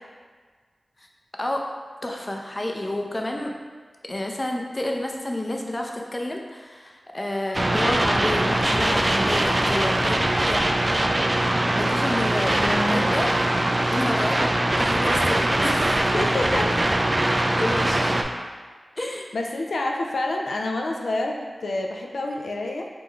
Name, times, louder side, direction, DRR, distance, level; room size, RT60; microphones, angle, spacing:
voice 1, 1.4-3.6 4.1-10.7 11.7-13.3 13.9-14.5 14.8-16.0 17.6-18.2 19.0-19.3, left 1 dB, 30° left, 1 dB, 0.6 m, -29 dB
sound 1, 7.5-18.2, right 1 dB, 35° right, 0.4 m, -22 dB
voice 2, 12.6-13.1 16.0-16.7 19.3-22.9, left 2 dB, 80° left, 1 dB, 0.4 m, -28 dB
3.7 x 2.5 x 4.4 m, 1.5 s
cardioid pair, 50°, 0 cm